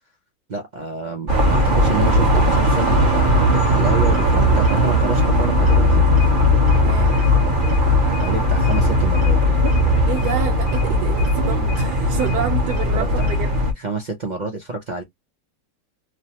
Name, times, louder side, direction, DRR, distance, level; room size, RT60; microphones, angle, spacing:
voice 1, 0.5-6.1 8.2-9.4 12.9-13.3 13.8-15.0, right 3 dB, 65° right, 0.4 m, -28 dB
sound 1, 1.3-13.7, left 1 dB, 35° right, 1.0 m, -17 dB
voice 2, 6.8-7.2 10.1-13.5, right 8 dB, 90° right, 1.3 m, -28 dB
3.1 x 2.1 x 2.8 m
omnidirectional pair, 1.7 m